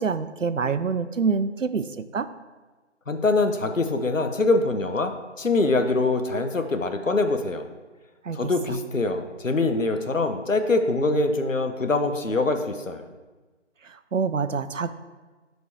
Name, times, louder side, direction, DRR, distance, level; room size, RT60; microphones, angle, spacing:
voice 1, 0.0-2.3 8.2-8.5 13.8-14.9, right 5 dB, 80° right, 12 dB, 0.6 m, -26 dB
voice 2, 3.1-7.6 8.3-13.0, left 3 dB, 90° left, 8 dB, 0.9 m, -24 dB
6.2 x 5.3 x 4.7 m, 1.3 s
figure-of-eight pair, 175°, 38 cm